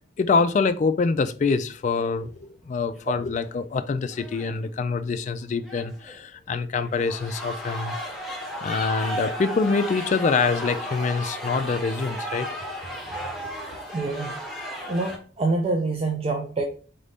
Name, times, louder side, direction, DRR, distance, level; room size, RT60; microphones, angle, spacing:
voice 1, 0.2-8.0 8.6-12.5, left 4 dB, 40° left, 0.3 m, -25 dB
sound 1, 2.9-3.2 3.4-3.5 4.1-4.5 5.7-6.2 6.8-15.2, equal, ahead, 0.8 m, -34 dB
voice 2, 13.9-14.3 14.9-16.6, right 3 dB, 30° right, 0.4 m, -26 dB
4.2 x 2.6 x 3.4 m
head